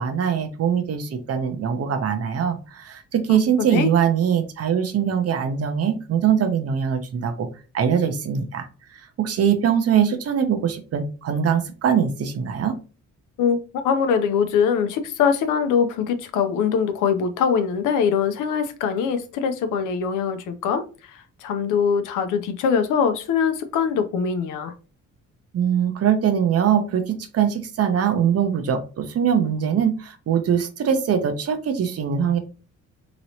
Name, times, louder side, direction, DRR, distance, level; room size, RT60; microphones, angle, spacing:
voice 1, 0.0-7.5 7.7-12.8 25.5-32.4, right 8 dB, 50° right, 0.7 m, -22 dB
voice 2, 13.8-24.7, left 6 dB, 85° left, 0.6 m, -22 dB
3.0 x 2.9 x 2.8 m
cardioid pair, 90°, 30 cm